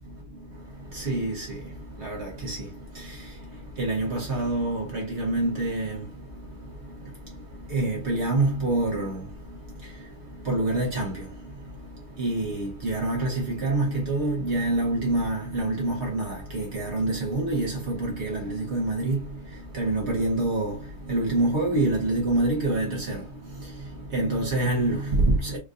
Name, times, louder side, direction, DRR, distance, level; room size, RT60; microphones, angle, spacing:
voice 1, 0.0-25.6, right 2 dB, 60° right, 1.3 m, -27 dB
4.5 x 2.6 x 2.4 m
omnidirectional pair, 1.3 m